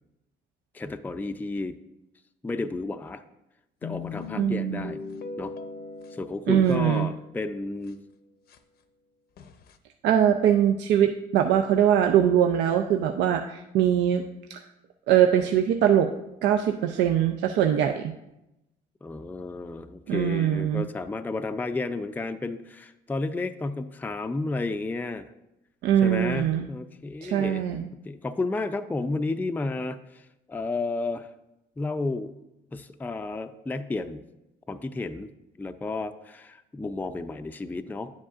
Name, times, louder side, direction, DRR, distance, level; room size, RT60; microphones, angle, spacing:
voice 1, 0.7-1.8 2.4-3.2 3.8-5.0 5.4-5.5 6.1-8.0 19.0-25.3 26.0-27.6 28.1-31.3 31.8-32.3 32.7-34.2 34.7-35.3 35.6-38.1, left 3 dB, 10° left, 8 dB, 0.4 m, -32 dB
sound 1, 3.8-7.4 7.9-8.0 8.5-8.6 9.4-9.7, left 5 dB, 60° left, 0.6 m, -39 dB
voice 2, 4.4-4.9 6.5-7.1 10.0-14.2 14.5-14.6 15.1-16.1 16.4-18.1 20.1-20.8 25.8-26.7 27.2-27.9, right 9 dB, 80° right, 5 dB, 0.5 m, -22 dB
10.5 x 7.4 x 2.4 m, 0.91 s
cardioid pair, 90°, 18 cm